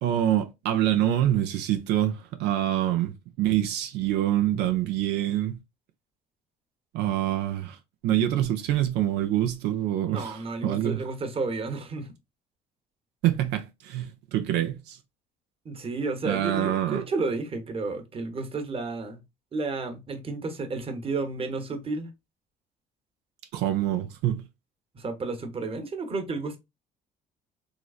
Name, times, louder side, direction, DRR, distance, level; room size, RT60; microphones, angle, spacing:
voice 1, 0.0-5.6 6.9-7.8 8.0-11.0 13.2-15.0 16.2-17.0 23.5-24.4, right 12 dB, 85° right, 0.6 m, -26 dB
voice 2, 10.1-12.1 15.6-19.2 19.5-22.1 24.9-26.6, right 3 dB, 35° right, 1.0 m, -32 dB
3.8 x 3.1 x 2.4 m
cardioid pair, 110°, 17 cm